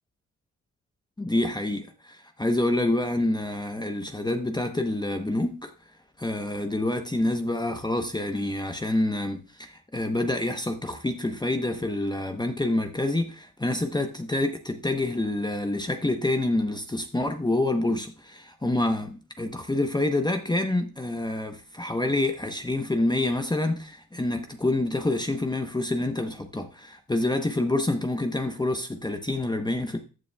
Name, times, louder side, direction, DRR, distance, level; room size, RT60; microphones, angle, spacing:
voice 1, 1.2-5.7 6.2-30.0, left 2 dB, 15° left, 0.9 m, -27 dB
14.0 x 6.9 x 2.3 m
cardioid pair, 70°, 32 cm